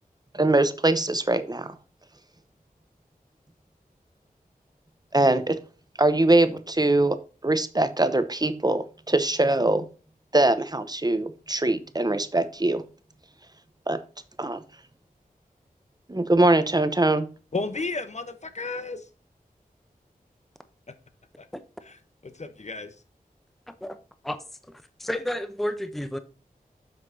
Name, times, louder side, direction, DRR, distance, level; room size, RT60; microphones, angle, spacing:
voice 1, 0.3-1.7 5.1-5.6 6.0-7.2 7.4-9.8 10.3-12.8 13.9-14.0 14.4-14.6 16.1-17.3, right 2 dB, 25° right, 0.8 m, -22 dB
voice 2, 17.5-19.0 22.2-22.9, left 3 dB, 50° left, 1.0 m, -32 dB
voice 3, 23.7-24.0 24.2-26.2, left 1 dB, ahead, 0.7 m, -32 dB
7.8 x 5.8 x 2.7 m
wide cardioid pair, 55°, 15 cm